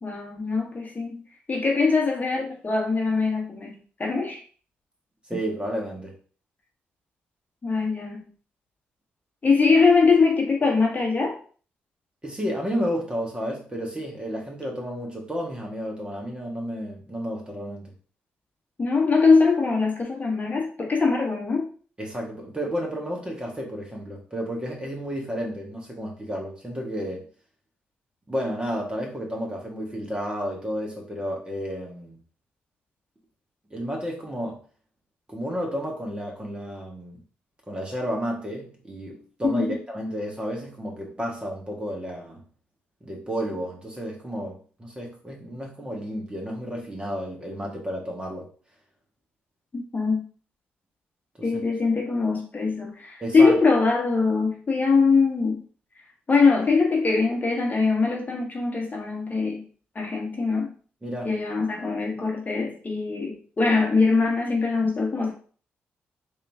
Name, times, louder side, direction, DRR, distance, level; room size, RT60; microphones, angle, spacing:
voice 1, 0.0-3.7 4.0-4.4 7.6-8.3 9.4-11.4 18.8-21.7 39.5-39.8 49.7-50.2 51.4-55.6 56.3-59.7 59.9-60.7 61.2-65.3, left 4 dB, 35° left, -1 dB, 1.4 m, -22 dB
voice 2, 5.3-6.1 12.2-17.9 22.0-27.2 28.3-32.2 33.7-34.6 35.3-37.2 37.7-42.4 43.0-48.5 51.4-51.6 53.2-53.6 61.0-61.3, equal, 20° right, -1 dB, 1.6 m, -32 dB
3.6 x 3.0 x 3.5 m, 0.41 s
supercardioid pair, 50°, 5 cm